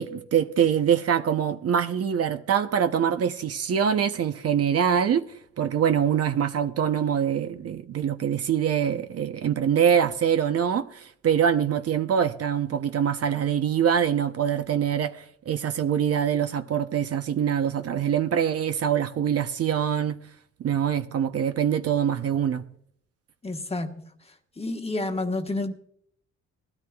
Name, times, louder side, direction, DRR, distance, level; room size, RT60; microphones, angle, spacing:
voice 1, 0.0-5.3 5.6-20.2 20.6-22.7, right 8 dB, 55° right, 0.8 m, -24 dB
voice 2, 23.4-24.1 24.6-25.7, left 2 dB, 20° left, 1.2 m, -29 dB
20.0 x 13.0 x 2.3 m
cardioid pair, 90°, 30 cm